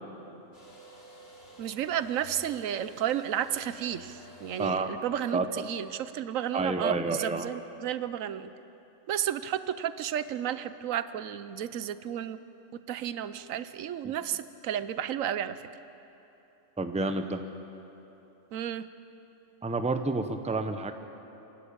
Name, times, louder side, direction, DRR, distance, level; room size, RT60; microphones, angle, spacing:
sound 1, 0.5-6.0, equal, 50° left, 3.2 m, -52 dB
voice 1, 1.6-8.5 9.1-12.4 12.9-15.6 18.5-18.8, right 10 dB, 85° right, 13 dB, 1.1 m, -32 dB
voice 2, 5.3-5.6 6.5-7.5 14.0-14.1 16.8-17.4 19.6-20.9, right 3 dB, 5° right, 7 dB, 0.7 m, -29 dB
27.0 x 12.0 x 8.7 m, 3.0 s
omnidirectional pair, 1.4 m